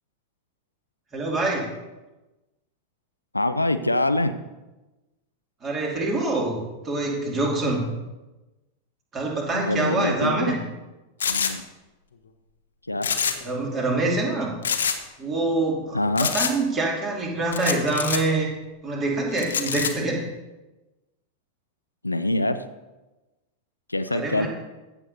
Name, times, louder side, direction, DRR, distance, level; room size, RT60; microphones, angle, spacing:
voice 1, 1.1-1.7 5.6-7.9 9.1-10.6 13.4-14.5 15.2-18.5 18.8-20.2 24.1-24.5, right 2 dB, 25° right, -1 dB, 2.6 m, -25 dB
voice 2, 3.3-4.4 9.5-10.5 11.3-11.6 12.9-13.1 15.9-16.3 22.0-22.6 23.9-24.5, left 2 dB, 85° left, 10 dB, 0.4 m, -24 dB
sound 1, 11.2-11.5 13.0-13.5 13.8-13.9 14.6-15.0 16.2-16.5 17.5-18.2 19.4-19.9, left 7 dB, 65° left, 0.8 m, -25 dB
15.0 x 7.1 x 2.7 m, 1.1 s
figure-of-eight pair, 90°, 0 cm